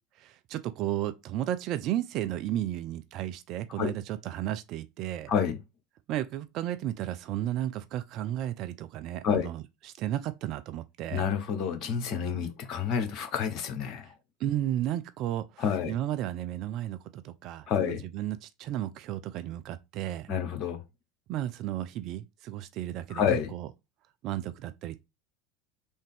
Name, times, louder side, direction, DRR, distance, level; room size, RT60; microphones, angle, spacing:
voice 1, 0.2-5.3 6.1-11.2 14.4-15.4 15.9-20.3 21.3-23.2 23.5-23.7 24.2-25.0, right 12 dB, 45° right, 0.4 m, -33 dB
voice 2, 5.3-5.6 9.2-9.5 11.1-14.1 15.6-15.9 17.7-18.0 20.3-20.8 23.1-23.5, left 7 dB, 45° left, 1.0 m, -29 dB
3.4 x 2.7 x 3.7 m
figure-of-eight pair, 75°, 0 cm